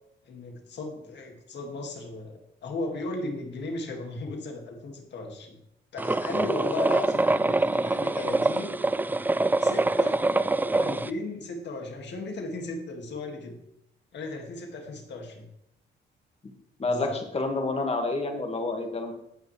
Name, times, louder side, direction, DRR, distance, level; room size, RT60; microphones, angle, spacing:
voice 1, 0.2-5.6 5.9-8.8 9.6-10.2 10.8-13.6 14.1-15.5 16.8-17.2, left 2 dB, 60° left, 3 dB, 2.4 m, -36 dB
sound 1, 6.0-11.1, right 2 dB, 10° right, 0.4 m, -25 dB
voice 2, 16.8-19.1, left 2 dB, 30° left, 4 dB, 2.0 m, -28 dB
18.0 x 6.1 x 3.4 m, 0.80 s
cardioid pair, 90°, 20 cm